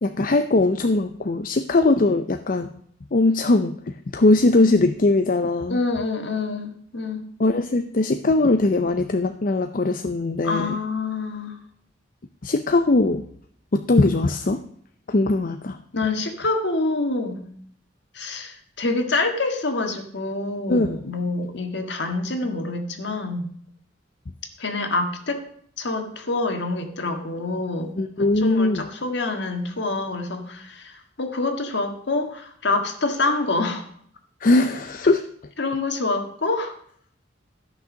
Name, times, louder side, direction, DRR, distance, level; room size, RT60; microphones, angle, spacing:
voice 1, 0.0-2.7 3.1-5.8 7.4-10.8 12.4-13.2 13.7-14.6 15.1-15.8 20.7-21.1 28.0-28.9 34.4-35.2, left 2 dB, 45° left, 8 dB, 0.6 m, -20 dB
voice 2, 5.7-7.3 10.4-11.6 15.9-17.4 18.1-23.5 24.6-25.5 25.8-27.9 28.2-33.8 35.6-36.7, left 3 dB, 65° left, 5 dB, 1.7 m, -26 dB
13.0 x 6.4 x 6.4 m, 0.62 s
head